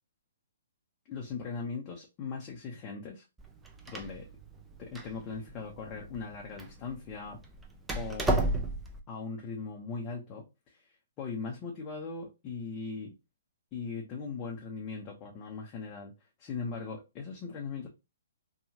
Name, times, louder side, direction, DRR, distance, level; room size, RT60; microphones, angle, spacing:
voice 1, 1.1-3.2 3.9-4.3 4.8-7.4 7.9-8.5 9.1-13.1 13.7-16.1 16.4-17.9, left 4 dB, 30° left, 0.7 m, -39 dB
Door, 3.4-9.0, right 1 dB, 10° right, 0.5 m, -34 dB
2.8 x 2.3 x 2.8 m
hypercardioid pair, 130°, 0 cm